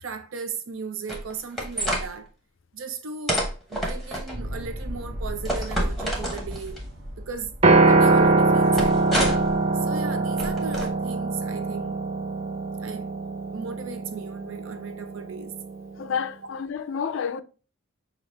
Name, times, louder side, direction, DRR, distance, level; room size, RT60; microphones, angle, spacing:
voice 1, 0.0-2.3 2.7-3.4 3.7-6.8 7.2-7.5 7.8-9.1 9.7-12.0 12.8-13.1 13.5-15.5, right 5 dB, 70° right, 0.6 m, -36 dB
sound 1, 1.1-2.1 3.3-4.3 5.4-6.8 8.7-9.5 10.4-10.9, equal, ahead, 0.9 m, -28 dB
sound 2, 4.3-9.5, equal, 50° right, 1.2 m, -36 dB
Piano, 7.6-15.9, right 3 dB, 25° right, 0.4 m, -23 dB
voice 2, 16.0-17.4, left 6 dB, 60° left, 0.3 m, -29 dB
5.8 x 2.5 x 3.3 m
head